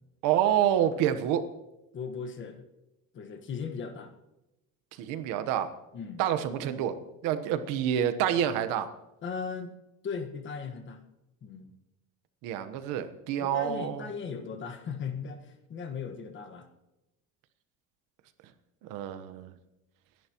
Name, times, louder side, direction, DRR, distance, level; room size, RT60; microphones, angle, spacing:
voice 1, 0.2-1.4 5.0-5.7 6.2-7.0 7.2-8.9 12.4-14.0 18.9-19.5, right 10 dB, 75° right, 10 dB, 1.3 m, -27 dB
voice 2, 1.9-2.6 3.1-4.1 5.9-6.2 9.2-9.7 10.0-11.0 11.4-11.7 13.4-16.7, left 6 dB, 35° left, 7 dB, 1.6 m, -37 dB
28.5 x 11.0 x 3.1 m, 0.96 s
cardioid pair, 145°, 32 cm